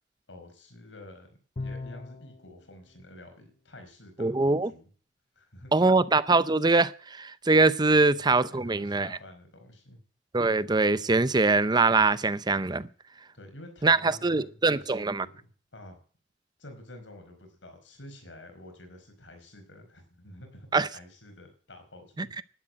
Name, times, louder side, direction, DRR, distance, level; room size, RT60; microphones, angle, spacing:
voice 1, 0.3-4.9 5.3-5.9 7.9-8.0 8.5-10.0 13.3-16.0 16.6-20.7 20.9-22.4, left 1 dB, 85° left, 4.8 m, -49 dB
Bowed string instrument, 1.6-2.4, left 3 dB, 40° left, 0.7 m, -37 dB
voice 2, 4.2-4.7 5.7-9.2 10.3-12.9 13.8-15.3 20.7-20.9 22.2-22.4, right 3 dB, 25° right, 0.6 m, -23 dB
12.0 x 10.5 x 8.9 m
head